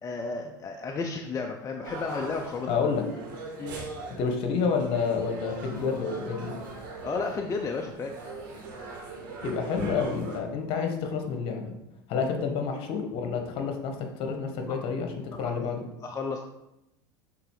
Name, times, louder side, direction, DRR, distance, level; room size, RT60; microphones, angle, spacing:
voice 1, 0.0-2.7 3.6-3.8 7.0-8.1 12.1-12.3 14.7-14.8 15.4-15.5 16.0-16.4, left 4 dB, 30° left, 2 dB, 0.7 m, -33 dB
sound 1, 1.8-10.4, right 3 dB, 70° right, 2.6 m, -40 dB
voice 2, 2.7-3.0 4.2-6.5 9.4-11.7 12.1-15.8, left 5 dB, 55° left, 4 dB, 1.4 m, -29 dB
6.8 x 3.8 x 4.9 m, 0.88 s
hypercardioid pair, 95°, 11 cm